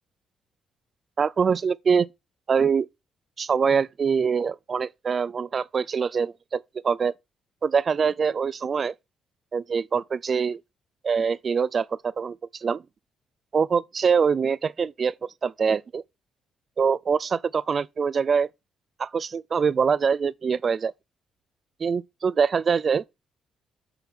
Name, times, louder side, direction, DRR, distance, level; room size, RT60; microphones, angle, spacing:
voice 1, 1.2-2.1 2.5-2.9 3.4-7.1 7.6-8.9 9.5-10.6 11.0-12.8 13.5-15.1 15.4-16.0 16.8-18.5 19.0-20.9 21.8-23.0, right 6 dB, 45° right, 0.4 m, -24 dB
6.9 x 3.7 x 5.9 m
cardioid pair, 90°, 0 cm